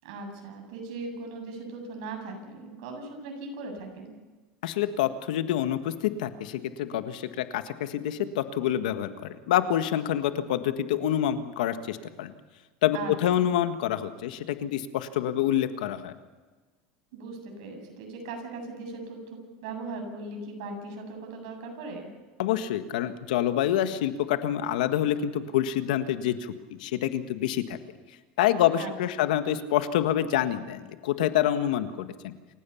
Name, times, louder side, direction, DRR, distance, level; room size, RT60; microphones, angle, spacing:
voice 1, 0.0-4.1 12.9-13.5 17.1-22.1 28.8-29.2, right 3 dB, 75° right, 3 dB, 7.8 m, -39 dB
voice 2, 4.6-12.3 12.8-16.1 22.4-26.5 26.8-27.8 28.4-32.3, left 11 dB, 90° left, 9 dB, 1.6 m, -27 dB
28.5 x 16.0 x 7.2 m, 1.3 s
supercardioid pair, 130°, 4 cm